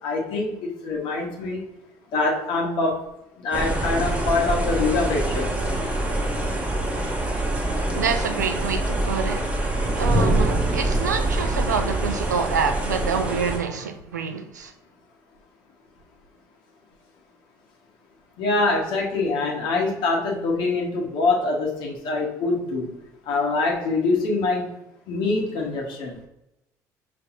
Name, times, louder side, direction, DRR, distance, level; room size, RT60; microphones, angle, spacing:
voice 1, 0.0-1.6 2.1-3.0 3.4-5.5 18.4-22.9 23.3-24.7 25.1-26.2, left 3 dB, 60° left, 1.3 m, -24 dB
sound 1, 3.5-13.6, right 1 dB, 15° right, 1.3 m, -25 dB
voice 2, 7.9-9.6 10.0-14.7, right 6 dB, 85° right, 0.5 m, -27 dB
5.6 x 3.3 x 2.6 m
figure-of-eight pair, 60°, 9 cm